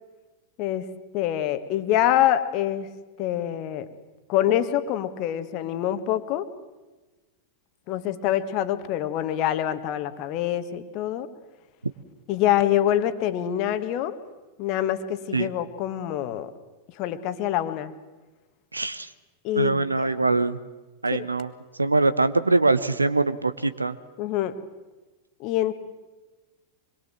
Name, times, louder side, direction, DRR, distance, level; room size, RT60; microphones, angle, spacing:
voice 1, 1.1-2.9 3.2-3.9 4.3-6.5 7.9-11.3 12.3-14.2 14.6-16.5 17.0-17.9 19.4-20.1 21.1-21.3 24.2-24.5 25.4-25.7, left 12 dB, 40° left, 10 dB, 1.7 m, -25 dB
voice 2, 18.7-19.1 19.5-20.6 21.0-21.5 21.8-23.9, right 3 dB, 80° right, 14 dB, 1.1 m, -23 dB
25.5 x 21.5 x 7.6 m, 1.2 s
figure-of-eight pair, 90°, 0 cm